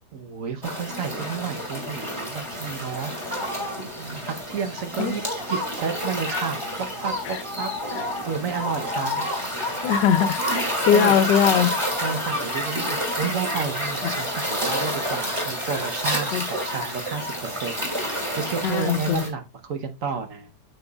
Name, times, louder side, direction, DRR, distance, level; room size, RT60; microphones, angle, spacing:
voice 1, 0.1-3.1 3.9-5.2 5.5-7.7 8.2-9.3 10.9-11.1 12.0-20.5, right 6 dB, 55° right, 1.2 m, -31 dB
sound 1, 0.6-19.3, equal, 15° right, 2.6 m, -29 dB
voice 2, 9.8-11.7 14.0-14.1 16.3-16.4 18.6-19.2, left 9 dB, 85° left, 1.4 m, -21 dB
8.9 x 6.7 x 2.3 m
omnidirectional pair, 1.9 m